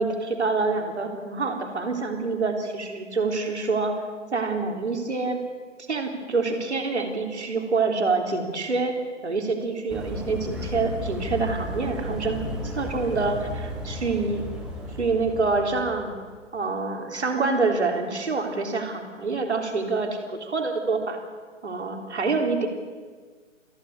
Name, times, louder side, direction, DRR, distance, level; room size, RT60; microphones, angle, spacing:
voice 1, 0.0-4.0 4.3-5.4 5.9-9.0 9.2-14.4 15.0-16.1 16.5-21.2 21.6-22.7, right 3 dB, 60° right, 4 dB, 3.7 m, -26 dB
sound 1, 9.9-16.3, equal, ahead, 1.6 m, -34 dB
27.5 x 11.0 x 8.4 m, 1.5 s
figure-of-eight pair, 140°, 38 cm